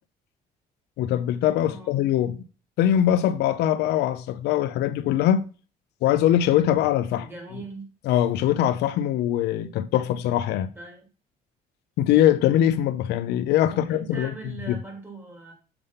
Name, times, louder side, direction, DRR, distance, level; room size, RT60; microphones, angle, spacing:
voice 1, 1.0-2.4 2.8-5.5 6.0-7.3 8.1-10.7 12.0-14.3 14.7-14.8, left 11 dB, 80° left, 0.6 m, -22 dB
voice 2, 1.7-2.0 7.2-7.9 10.8-11.1 13.6-15.5, right 3 dB, 15° right, 2.5 m, -40 dB
7.0 x 3.4 x 5.5 m
cardioid pair, 110°, 17 cm